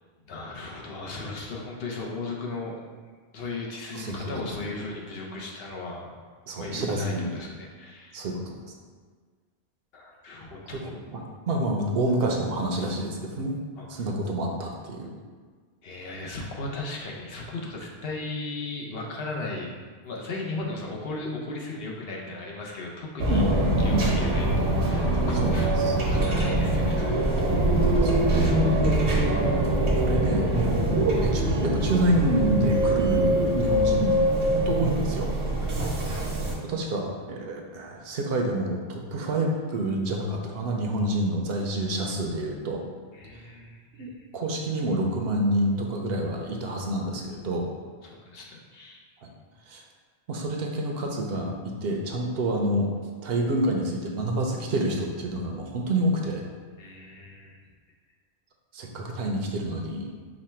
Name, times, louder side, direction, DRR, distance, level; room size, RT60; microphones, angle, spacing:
voice 1, 0.3-2.8 3.3-6.1 6.6-8.3 9.9-10.9 13.8-14.1 15.8-19.7 20.0-23.4 23.8-25.7 26.0-27.5 35.5-36.0 43.1-44.1 48.0-49.0 56.8-57.6, left 2 dB, 65° left, -2 dB, 0.9 m, -36 dB
voice 2, 6.5-7.3 8.1-8.6 11.1-13.6 13.9-15.1 23.2-24.1 25.4-25.5 25.8-26.0 28.0-28.2 29.1-29.5 29.8-30.8 31.2-34.2 34.4-35.3 36.6-42.8 44.0-47.7 49.7-49.8 50.3-52.9 53.2-56.4 58.7-60.0, right 1 dB, 70° right, 1 dB, 0.8 m, -28 dB
sound 1, 23.2-36.5, right 1 dB, 85° right, 1.1 m, -23 dB
5.2 x 2.2 x 4.3 m, 1.5 s
omnidirectional pair, 1.1 m